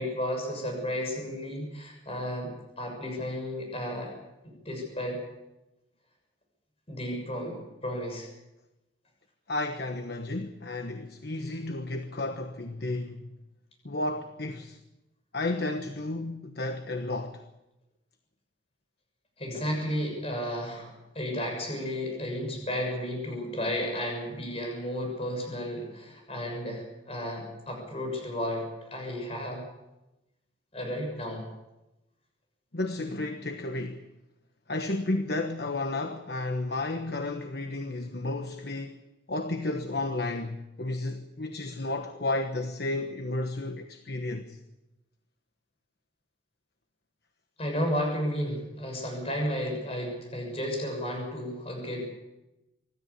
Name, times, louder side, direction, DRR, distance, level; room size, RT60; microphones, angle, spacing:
voice 1, 0.0-4.1 4.6-5.2 6.9-8.3 19.4-20.9 21.1-28.6 28.9-29.6 30.7-31.4 47.6-52.1, equal, 35° left, 6.7 m, -33 dB
voice 2, 9.5-13.2 13.8-14.8 15.3-17.4 32.7-34.0 34.7-39.0 39.3-44.6, left 2 dB, 60° left, 1.2 m, -32 dB
26.0 x 13.5 x 8.3 m
head